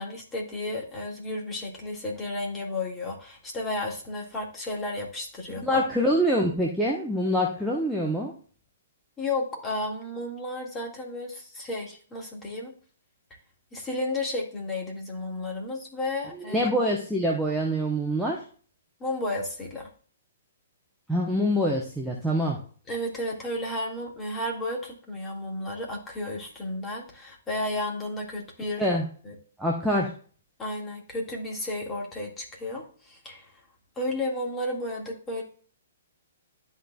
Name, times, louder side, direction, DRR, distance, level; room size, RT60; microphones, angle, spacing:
voice 1, 0.0-5.8 9.2-12.7 13.7-16.6 19.0-19.9 22.9-28.9 29.2-29.4 30.6-33.6 34.0-35.4, left 1 dB, 15° left, -1 dB, 2.0 m, -33 dB
voice 2, 5.6-8.3 16.5-18.4 21.1-22.6 28.8-29.1 29.6-30.1, equal, ahead, -3 dB, 1.0 m, -25 dB
12.5 x 4.2 x 2.4 m, 0.43 s
figure-of-eight pair, 120°, 0 cm